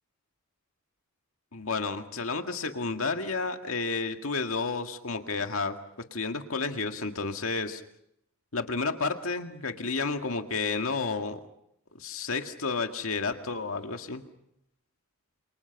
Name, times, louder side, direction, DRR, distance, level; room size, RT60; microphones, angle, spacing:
voice 1, 1.5-5.8 6.1-7.8 8.5-11.4 12.0-14.2, left 4 dB, 80° left, 5 dB, 2.0 m, -31 dB
29.5 x 28.0 x 5.9 m, 0.76 s
head